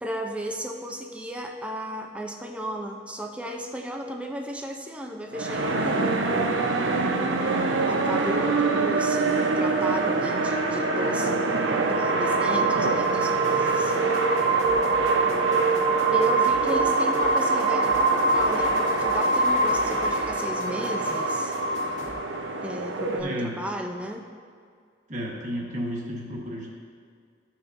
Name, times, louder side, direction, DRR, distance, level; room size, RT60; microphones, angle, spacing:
voice 1, 0.0-6.2 7.8-14.2 15.2-21.6 22.6-24.3, equal, 5° right, 2 dB, 0.5 m, -35 dB
sound 1, 5.3-23.2, right 3 dB, 85° right, 0.7 m, -24 dB
sound 2, 13.0-22.1, left 1 dB, 40° left, 1.4 m, -46 dB
voice 2, 23.2-23.6 25.1-26.7, equal, 40° right, -2 dB, 1.3 m, -32 dB
13.5 x 5.8 x 2.6 m, 2.1 s
head